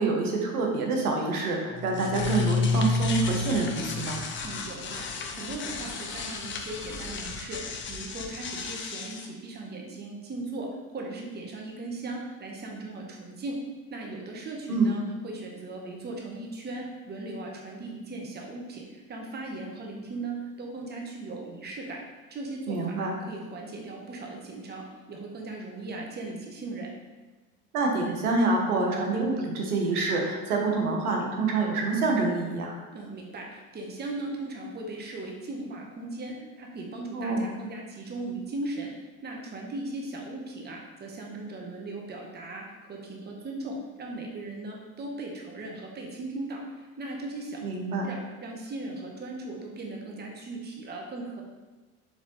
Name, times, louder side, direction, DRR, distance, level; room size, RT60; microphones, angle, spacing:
voice 1, 0.0-4.2 14.7-15.0 22.7-23.1 27.7-32.8 37.1-37.5 47.6-48.1, right 3 dB, 85° right, 0 dB, 0.9 m, -26 dB
sound 1, 1.7-9.3, left 4 dB, 30° left, 0.5 m, -31 dB
voice 2, 4.4-10.7 10.9-13.6 13.9-22.0 22.3-26.9 32.9-38.9 39.2-47.6 48.0-51.4, right 2 dB, 25° right, 0 dB, 0.9 m, -38 dB
4.6 x 3.4 x 3.0 m, 1.2 s
hypercardioid pair, 80°, 43 cm